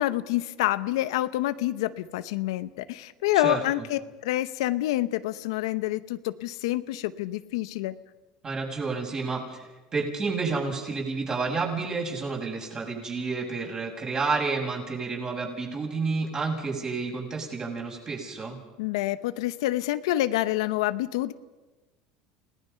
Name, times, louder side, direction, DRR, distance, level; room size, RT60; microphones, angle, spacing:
voice 1, 0.0-8.0 18.8-21.3, left 15 dB, 85° left, 13 dB, 0.8 m, -27 dB
voice 2, 8.4-18.6, right 4 dB, 30° right, -1 dB, 7.1 m, -30 dB
29.5 x 18.5 x 5.7 m, 1.2 s
supercardioid pair, 115°, 3 cm